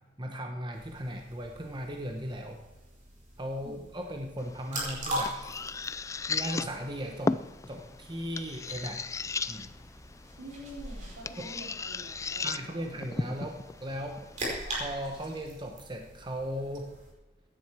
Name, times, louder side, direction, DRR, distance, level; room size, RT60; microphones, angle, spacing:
voice 1, 0.2-2.6 3.4-5.4 6.3-7.4 7.7-9.0 9.5-9.7 11.4-11.5 12.4-14.3 14.8-16.9, equal, 25° right, 3 dB, 1.2 m, -37 dB
sound 1, 0.7-17.1, right 1 dB, 40° right, 4.8 m, -42 dB
sound 2, 4.4-15.4, left 4 dB, 15° left, 0.3 m, -37 dB
voice 2, 10.4-12.9, right 1 dB, 85° right, -1 dB, 3.8 m, -46 dB
16.0 x 10.5 x 4.7 m, 1.1 s
head